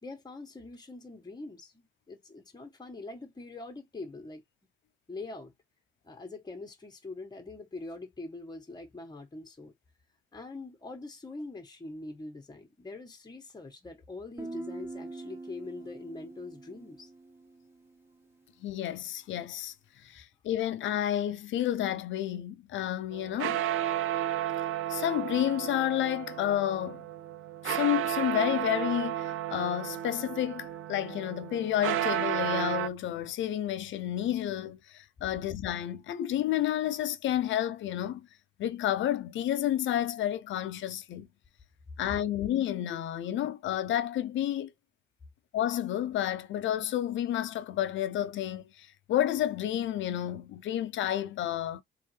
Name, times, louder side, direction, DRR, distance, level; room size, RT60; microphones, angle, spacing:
voice 1, 0.0-4.4 5.1-5.5 6.0-9.7 10.3-17.1, left 2 dB, 20° left, 1.4 m, -43 dB
Guitar, 14.4-18.0, right 2 dB, 15° right, 1.4 m, -44 dB
voice 2, 18.6-23.6 24.9-27.0 27.6-38.3 38.6-41.3 42.0-44.7 45.5-51.8, left 12 dB, 75° left, 0.6 m, -30 dB
sound 1, 23.1-32.9, right 12 dB, 85° right, 0.5 m, -33 dB
3.6 x 3.2 x 3.2 m
cardioid pair, 90°, 20 cm